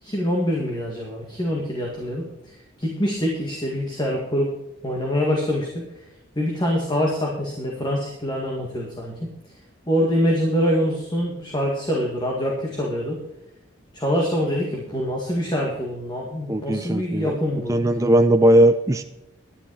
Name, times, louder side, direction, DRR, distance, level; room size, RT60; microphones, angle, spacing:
voice 1, 0.0-4.5 4.8-5.8 6.4-9.1 9.9-13.2 13.9-17.8, equal, 20° left, -1 dB, 1.9 m, -25 dB
voice 2, 16.5-17.4 17.7-19.0, right 1 dB, 15° right, 6 dB, 0.5 m, -18 dB
10.5 x 10.0 x 4.7 m, 0.90 s
head